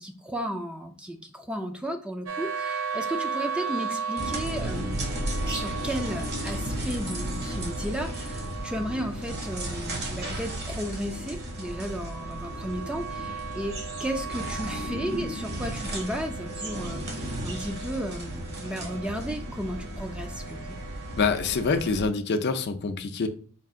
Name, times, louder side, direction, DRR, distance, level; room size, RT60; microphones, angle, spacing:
voice 1, 0.0-5.0 5.4-20.8, equal, 5° right, 5 dB, 0.4 m, -34 dB
sound 1, 2.3-21.9, right 6 dB, 75° right, 0.6 m, -38 dB
sound 2, 4.2-22.1, right 1 dB, 55° right, 1.1 m, -34 dB
voice 2, 21.2-23.3, left 4 dB, 50° left, 8 dB, 0.5 m, -26 dB
4.5 x 2.4 x 3.5 m, 0.43 s
head